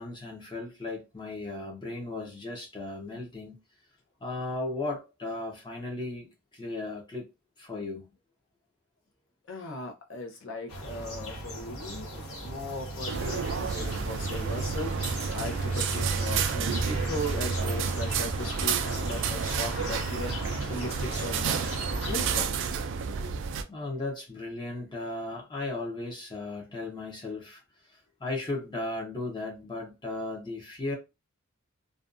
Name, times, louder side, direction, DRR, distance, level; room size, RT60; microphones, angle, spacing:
voice 1, 0.0-3.6 4.2-7.3 7.6-8.1 23.7-27.6 27.9-31.0, left 2 dB, 20° left, 0.6 m, -36 dB
voice 2, 9.5-22.6, left 1 dB, 60° left, 0.7 m, -38 dB
sound 1, 10.7-22.4, right 1 dB, 85° left, 1.3 m, -35 dB
sound 2, 13.1-23.6, right 6 dB, 60° right, 0.3 m, -31 dB
2.5 x 2.2 x 2.5 m
head